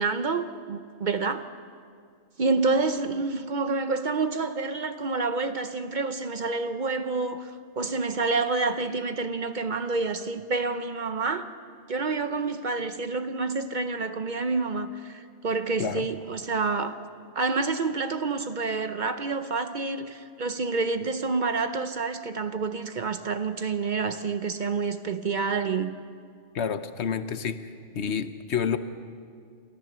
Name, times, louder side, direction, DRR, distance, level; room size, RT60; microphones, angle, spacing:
voice 1, 0.0-1.4 2.4-7.5 7.8-11.5 11.9-17.0 17.4-26.0, right 4 dB, 50° right, 10 dB, 0.8 m, -28 dB
voice 2, 26.5-27.6 27.9-28.8, left 7 dB, 70° left, 11 dB, 1.1 m, -28 dB
28.5 x 14.0 x 6.8 m, 2.2 s
omnidirectional pair, 1.2 m